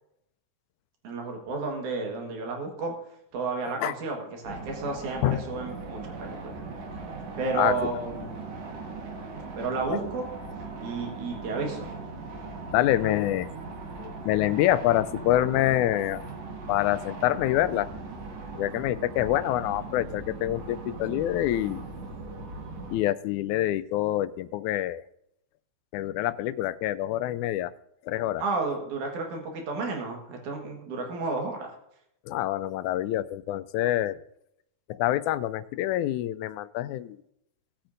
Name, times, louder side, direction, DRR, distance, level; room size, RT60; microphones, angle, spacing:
voice 1, 1.0-2.9 3.3-6.6 7.4-8.5 9.6-10.3 10.8-11.9 28.4-31.7, right 3 dB, 85° right, 2 dB, 3.1 m, -32 dB
sound 1, 4.4-23.0, right 3 dB, 60° right, 2.5 m, -39 dB
voice 2, 12.7-13.5 14.0-16.2 16.7-17.9 18.6-21.8 22.9-25.0 25.9-27.7 28.1-28.4 32.3-34.2 34.9-37.2, left 14 dB, 85° left, 15 dB, 2.0 m, -26 dB
18.0 x 8.7 x 2.6 m, 0.78 s
omnidirectional pair, 3.4 m